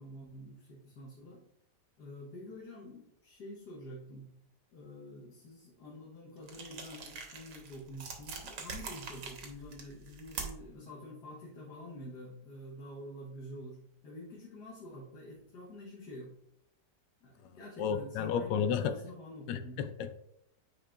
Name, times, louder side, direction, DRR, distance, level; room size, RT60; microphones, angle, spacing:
voice 1, 0.0-1.4 2.0-4.3 4.7-16.3 17.2-20.0, left 1 dB, 65° left, 1.6 m, -48 dB
sound 1, 6.4-10.8, right 5 dB, 80° right, 1.7 m, -44 dB
voice 2, 17.8-19.0 19.5-20.2, left 7 dB, 80° left, 1.3 m, -32 dB
8.7 x 4.8 x 2.4 m
omnidirectional pair, 1.9 m